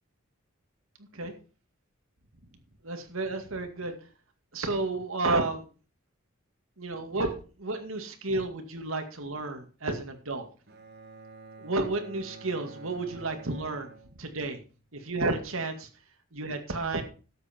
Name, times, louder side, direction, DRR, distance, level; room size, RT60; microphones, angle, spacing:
voice 1, 2.8-3.9 4.5-5.6 6.8-7.3 7.6-10.5 11.6-13.9 14.2-14.6 14.9-15.9 16.3-17.0, right 2 dB, 75° right, 5 dB, 2.2 m, -31 dB
Bowed string instrument, 10.7-14.8, right 3 dB, 50° right, 2.0 m, -49 dB
13.0 x 8.1 x 4.5 m, 0.36 s
head